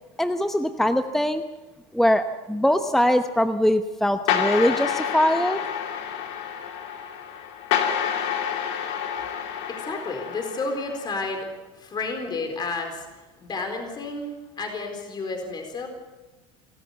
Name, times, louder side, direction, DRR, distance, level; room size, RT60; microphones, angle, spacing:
voice 1, 0.2-1.4 1.9-5.6, equal, ahead, 8 dB, 0.9 m, -22 dB
sound 1, 4.3-11.1, left 8 dB, 80° left, 2.7 m, -28 dB
voice 2, 9.7-11.5 11.7-13.1 13.4-15.9, left 3 dB, 30° left, 4 dB, 4.2 m, -31 dB
27.0 x 14.0 x 8.1 m, 1.2 s
supercardioid pair, 110°, 15 cm